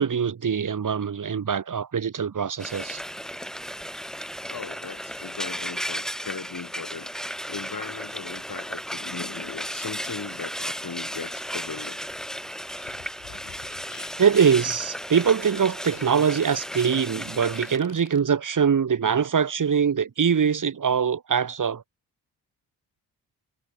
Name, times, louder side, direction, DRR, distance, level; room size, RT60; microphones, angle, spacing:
voice 1, 0.0-3.0 13.3-13.4 14.2-21.8, right 7 dB, 45° right, 1.6 m, -23 dB
Frying (food), 2.6-17.8, equal, ahead, 6.1 m, -35 dB
voice 2, 4.5-7.1 7.5-12.0, left 5 dB, 50° left, 7.1 m, -38 dB
Fart, 12.7-18.2, left 13 dB, 90° left, 7.4 m, -49 dB
supercardioid pair, 45°, 43 cm